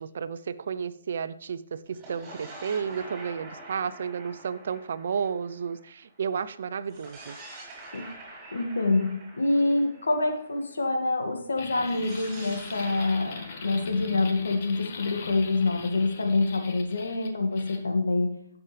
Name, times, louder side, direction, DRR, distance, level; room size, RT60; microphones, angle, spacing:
voice 1, 0.0-7.4, right 6 dB, 60° right, 14 dB, 0.6 m, -32 dB
sound 1, 1.9-6.3 6.8-10.8 11.8-15.6, right 2 dB, 20° right, 4.8 m, -47 dB
voice 2, 8.5-18.4, left 2 dB, 80° left, 3 dB, 2.1 m, -26 dB
sound 2, 11.6-17.8, left 5 dB, 50° left, 1.5 m, -42 dB
15.0 x 7.1 x 3.4 m, 0.71 s
hypercardioid pair, 135°, 0 cm